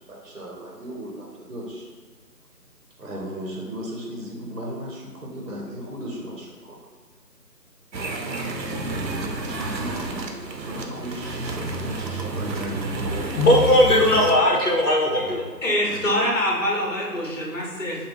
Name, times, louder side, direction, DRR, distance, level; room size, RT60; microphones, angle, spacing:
voice 1, 0.1-1.9 3.0-6.8 9.0-13.4, equal, 55° right, -2 dB, 0.8 m, -36 dB
sound 1, 7.9-14.4, right 2 dB, 85° right, 0.7 m, -30 dB
voice 2, 13.4-15.4, left 1 dB, 65° left, -1 dB, 1.0 m, -18 dB
voice 3, 15.6-18.1, equal, 50° left, -3 dB, 1.2 m, -24 dB
4.9 x 2.3 x 3.4 m, 1.5 s
figure-of-eight pair, 170°, 50 cm